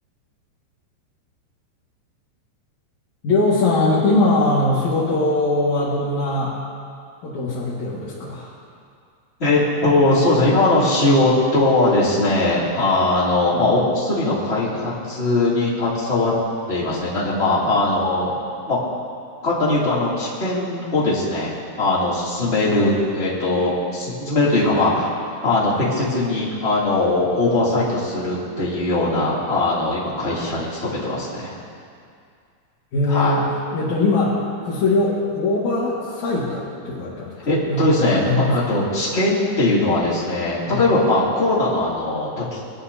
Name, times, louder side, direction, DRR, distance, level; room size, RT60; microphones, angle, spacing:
voice 1, 3.2-6.5 7.2-8.5 32.9-33.4 33.7-34.3 34.6-37.3 37.7-38.6 40.7-40.8, left 2 dB, 55° left, -8 dB, 2.3 m, -21 dB
voice 2, 9.4-16.3 16.7-18.3 18.7-18.8 19.4-25.1 25.4-31.5 33.1-33.4 37.4-42.6, left 2 dB, 20° left, -8 dB, 2.2 m, -20 dB
22.0 x 11.5 x 2.8 m, 2.3 s
omnidirectional pair, 5.2 m